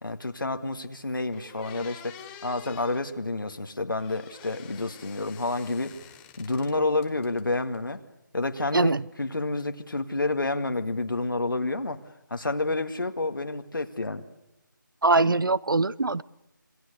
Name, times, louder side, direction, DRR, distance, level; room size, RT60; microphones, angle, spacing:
voice 1, 0.0-5.9 6.4-8.0 8.3-12.0 12.3-14.2, left 2 dB, 75° left, 6 dB, 2.1 m, -29 dB
sound 1, 0.8-0.9 1.3-3.1 4.0-6.7 7.0-7.8, left 9 dB, 10° left, 0.9 m, -48 dB
voice 2, 15.0-16.2, right 3 dB, 75° right, 22 dB, 0.8 m, -22 dB
26.5 x 23.0 x 6.8 m, 0.93 s
figure-of-eight pair, 165°, 11 cm